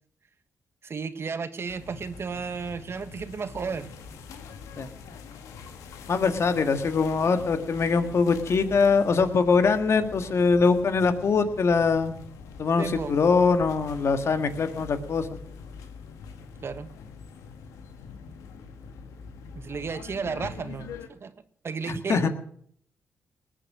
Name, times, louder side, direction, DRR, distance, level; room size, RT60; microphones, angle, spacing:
voice 1, 0.8-3.9 12.8-13.1 16.6-16.9 19.5-21.3 21.6-22.3, right 5 dB, 50° right, 11 dB, 1.3 m, -33 dB
sound 1, 1.7-21.1, left 5 dB, 85° left, 1.4 m, -44 dB
voice 2, 6.1-12.2 12.6-15.3 21.9-22.3, left 4 dB, 60° left, 8 dB, 1.7 m, -23 dB
19.5 x 8.9 x 6.2 m, 0.64 s
supercardioid pair, 50°, 5 cm